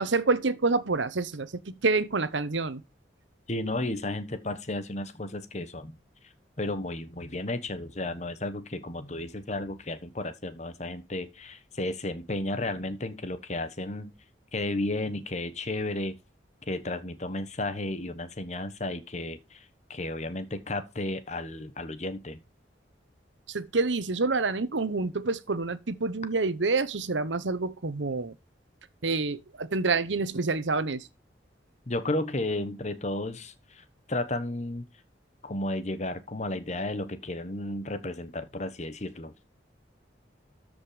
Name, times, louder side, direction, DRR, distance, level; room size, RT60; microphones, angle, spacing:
voice 1, 0.0-2.8 23.5-28.3 29.0-31.1, right 3 dB, 90° right, 1.0 m, -27 dB
voice 2, 3.5-6.0 6.6-14.1 14.5-16.1 16.7-22.4 31.9-34.8 35.4-39.3, left 2 dB, 40° left, 1.2 m, -33 dB
13.5 x 5.2 x 5.1 m
head